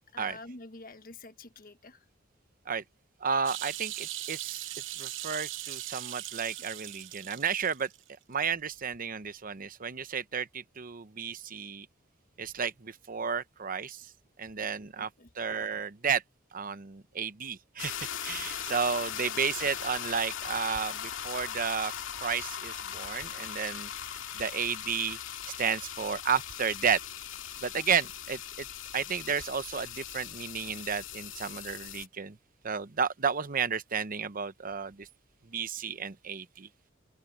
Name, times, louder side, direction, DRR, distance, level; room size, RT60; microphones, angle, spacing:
voice 1, 0.0-2.0 15.0-15.3 19.1-19.2 27.7-27.8, left 3 dB, 45° left, 1.3 m, -48 dB
voice 2, 3.2-4.7 5.0-7.9 8.3-11.9 12.4-14.1 14.4-15.1 15.3-16.2 16.5-21.9 22.2-23.9 24.3-25.2 25.6-27.0 27.6-28.7 28.9-32.4 32.6-35.1 35.4-36.7, right 6 dB, 45° right, 0.8 m, -32 dB
sound 1, 3.5-8.0 8.3-8.4, right 13 dB, 70° right, 1.0 m, -39 dB
sound 2, 17.8-32.1, left 9 dB, 80° left, 2.3 m, -39 dB
open air
head